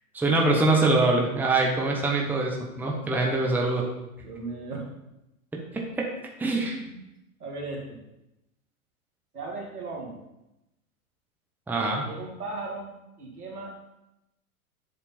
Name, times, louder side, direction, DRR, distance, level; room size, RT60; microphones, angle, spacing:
voice 1, 0.1-3.8 5.7-6.1 6.4-6.7 11.7-12.0, right 2 dB, 5° right, -1 dB, 0.9 m, -24 dB
voice 2, 4.2-4.9 6.8-7.0 7.4-8.0 9.3-10.2 12.0-13.7, right 3 dB, 85° right, -1 dB, 2.0 m, -37 dB
7.6 x 3.5 x 4.2 m, 0.91 s
hypercardioid pair, 110°, 44 cm